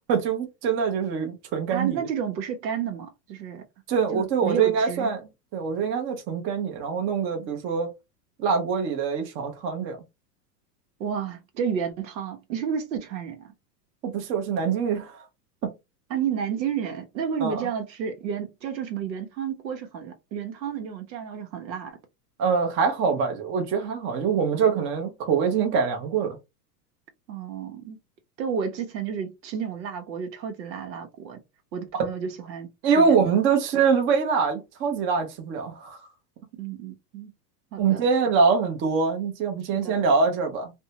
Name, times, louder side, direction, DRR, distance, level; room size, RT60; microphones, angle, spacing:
voice 1, 0.0-2.0 3.9-7.9 8.4-10.0 14.0-15.2 17.4-17.7 22.4-26.4 31.9-32.1 32.8-36.0 37.8-40.7, right 5 dB, 25° right, 0.6 m, -24 dB
voice 2, 1.7-3.6 4.1-5.1 11.0-13.5 16.1-22.0 27.3-28.0 28.4-31.4 31.7-32.7 33.0-33.2 36.6-37.3 37.7-38.1 39.7-40.0, right 7 dB, 90° right, 0.9 m, -31 dB
2.6 x 2.2 x 2.7 m
hypercardioid pair, 130°, 50 cm